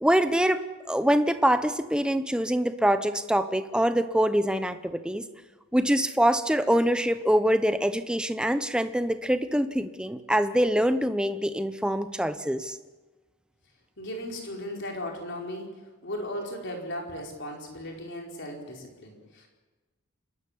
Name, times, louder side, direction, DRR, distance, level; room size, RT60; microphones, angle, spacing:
voice 1, 0.0-5.2 5.7-12.8, equal, 5° right, 10 dB, 0.8 m, -24 dB
voice 2, 14.0-15.7 16.0-19.5, left 1 dB, 50° left, 1 dB, 4.8 m, -36 dB
27.5 x 12.5 x 10.0 m, 1.2 s
head